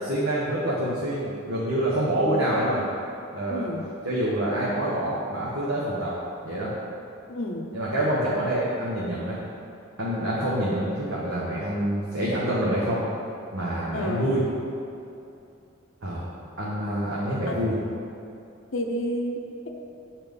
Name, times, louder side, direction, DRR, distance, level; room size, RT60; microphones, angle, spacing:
voice 1, 0.0-2.8 3.3-3.7 4.0-6.1 6.4-6.7 7.7-9.4 10.0-13.0 13.5-14.4 16.0-16.2 16.6-17.8, right 1 dB, 70° right, -7 dB, 1.2 m, -26 dB
voice 2, 3.5-3.9 7.3-7.7 13.9-14.3 17.5-17.8 18.7-19.7, left 1 dB, 75° left, 2 dB, 0.8 m, -30 dB
9.1 x 4.4 x 5.3 m, 2.7 s
head